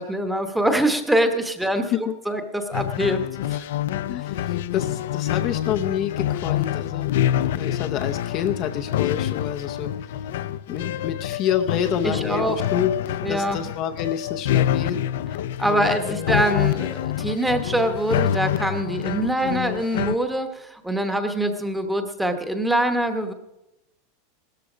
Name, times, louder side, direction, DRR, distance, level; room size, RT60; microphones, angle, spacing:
voice 1, 0.0-3.2 3.5-3.6 12.0-12.6 13.2-13.7 15.6-23.3, right 1 dB, 5° right, 7 dB, 1.0 m, -24 dB
sound 1, 2.7-20.2, left 11 dB, 75° left, 0.5 m, -26 dB
voice 2, 4.1-7.1 7.5-9.9 10.7-15.0 15.6-16.3, left 9 dB, 35° left, 6 dB, 0.6 m, -28 dB
17.0 x 13.5 x 5.0 m, 0.91 s
supercardioid pair, 170°, 0 cm